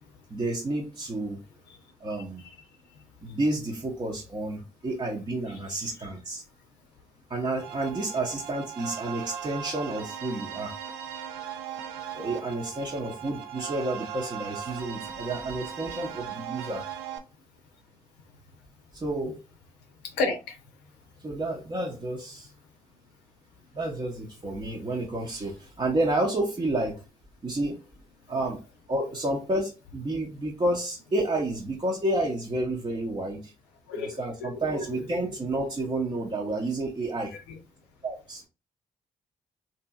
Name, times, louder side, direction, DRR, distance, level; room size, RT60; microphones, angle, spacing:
voice 1, 0.3-1.4 2.0-2.4 3.2-6.4 7.3-10.7 12.1-16.8 18.9-19.4 21.2-22.5 23.7-27.0 27.4-27.8 28.3-33.5 34.0-37.3 38.0-38.4, right 1 dB, 30° right, 0.7 m, -30 dB
voice 2, 2.9-3.3 5.5-5.6 6.0-6.1 20.0-20.6 33.9-35.0, left 3 dB, 80° left, 0.6 m, -33 dB
sound 1, 7.6-17.2, right 8 dB, 80° right, 0.5 m, -38 dB
2.8 x 2.7 x 2.3 m
hypercardioid pair, 40°, 17 cm